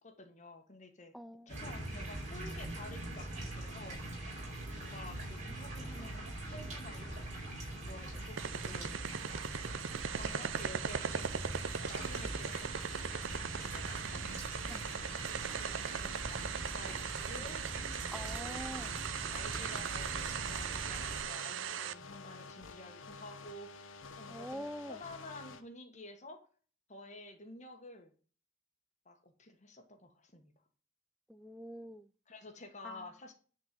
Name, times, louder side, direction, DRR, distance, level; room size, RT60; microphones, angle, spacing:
voice 1, 0.0-1.1 1.5-4.4 4.7-8.9 10.1-12.7 13.1-14.0 15.7-17.6 18.1-26.4 26.9-28.1 29.0-30.5 32.3-33.3, left 2 dB, 35° left, 1.6 m, -51 dB
voice 2, 1.1-1.5 14.7-14.9 17.4-17.5 18.1-18.9 24.3-25.0 31.3-32.1 32.8-33.1, equal, ahead, 0.4 m, -45 dB
sound 1, 1.5-21.2, right 1 dB, 40° right, 4.4 m, -42 dB
sound 2, 8.4-21.9, right 7 dB, 80° right, 0.6 m, -39 dB
sound 3, 11.6-25.6, left 5 dB, 85° left, 0.9 m, -52 dB
10.5 x 4.6 x 7.6 m
head